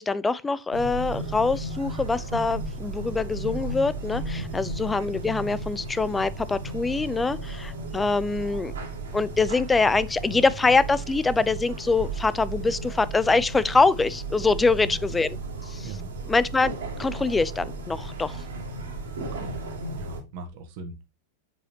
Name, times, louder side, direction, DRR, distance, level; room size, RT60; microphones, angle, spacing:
voice 1, 0.0-8.7 9.1-15.4 15.6-15.9 16.3-16.7 17.0-18.4, left 3 dB, 10° left, 0.4 m, -24 dB
sound 1, 0.7-20.2, right 2 dB, 65° right, 2.4 m, -35 dB
voice 2, 4.4-4.7 14.6-15.0 15.8-16.1 19.2-19.6 20.0-20.9, right 2 dB, 45° right, 1.5 m, -40 dB
7.6 x 4.9 x 2.9 m
figure-of-eight pair, 90°, 0 cm